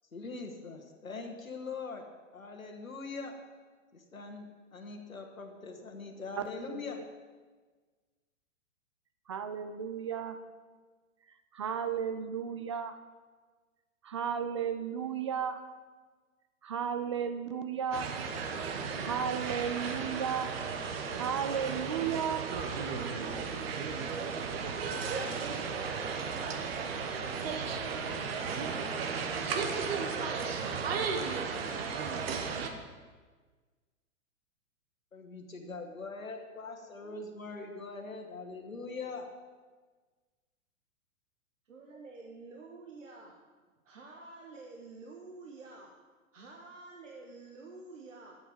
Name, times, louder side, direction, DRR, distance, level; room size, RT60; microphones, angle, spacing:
voice 1, 0.1-2.0 2.3-3.3 3.9-7.0 35.1-39.3, left 4 dB, 80° left, 3 dB, 1.4 m, -42 dB
voice 2, 6.4-7.0 9.3-10.4 11.5-13.0 14.0-15.6 16.6-18.1 19.0-20.5 21.1-22.4 23.1-23.6, right 7 dB, 25° right, 9 dB, 0.4 m, -34 dB
sound 1, 17.9-32.7, right 5 dB, 45° right, 1.2 m, -34 dB
voice 3, 41.6-43.3 43.8-45.9 46.3-48.4, right 3 dB, 65° right, 0 dB, 1.3 m, -49 dB
11.5 x 8.1 x 5.0 m, 1.4 s
figure-of-eight pair, 110°, 40 cm